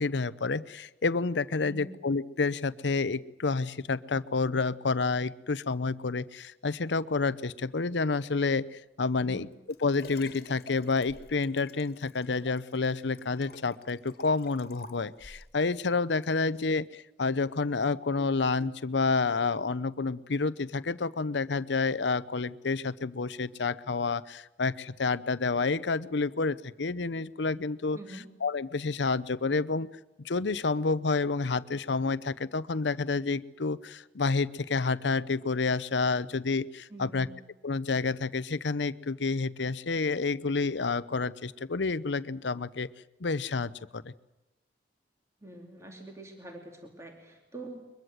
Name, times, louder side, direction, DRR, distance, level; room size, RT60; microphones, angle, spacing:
voice 1, 0.0-9.5 9.8-28.0 28.4-29.9 30.2-37.3 37.6-42.9 43.2-44.1, left 4 dB, 80° left, 17 dB, 0.7 m, -29 dB
voice 2, 1.6-2.0 9.2-9.5 27.9-28.3 36.9-37.3 45.4-47.9, right 2 dB, 15° right, 2 dB, 2.7 m, -45 dB
Liquid, 9.5-15.6 16.2-16.3, left 3 dB, 55° left, 1.9 m, -51 dB
23.0 x 22.0 x 7.9 m, 0.96 s
head